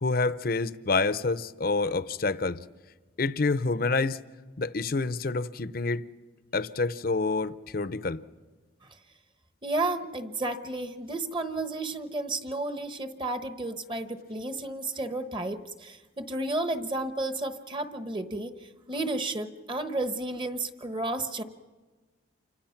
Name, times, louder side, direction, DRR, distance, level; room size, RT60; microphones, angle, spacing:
voice 1, 0.0-2.6 3.2-4.2 4.6-6.0 6.5-8.2, left 3 dB, 45° left, 0.7 m, -27 dB
voice 2, 9.6-21.4, right 2 dB, 25° right, 1.1 m, -32 dB
29.0 x 25.0 x 5.9 m
head